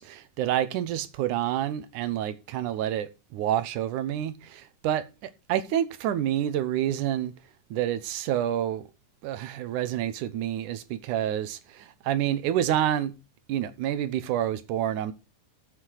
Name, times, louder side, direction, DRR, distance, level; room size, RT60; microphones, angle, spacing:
voice 1, 0.0-5.0 5.5-7.3 7.7-8.9 9.2-13.1 13.5-15.1, right 11 dB, 70° right, 2.2 m, -28 dB
8.1 x 7.9 x 6.5 m
omnidirectional pair, 4.1 m